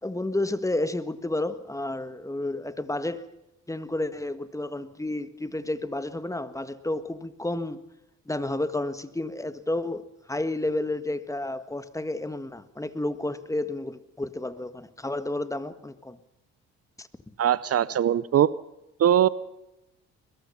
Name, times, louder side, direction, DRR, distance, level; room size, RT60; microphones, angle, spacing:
voice 1, 0.0-3.3 3.7-7.8 8.3-16.2 17.0-17.1, left 2 dB, 10° left, 1.6 m, -31 dB
voice 2, 17.4-18.5 19.0-19.3, right 10 dB, 50° right, 0.7 m, -21 dB
22.0 x 21.5 x 5.7 m
cardioid pair, 90°, 30 cm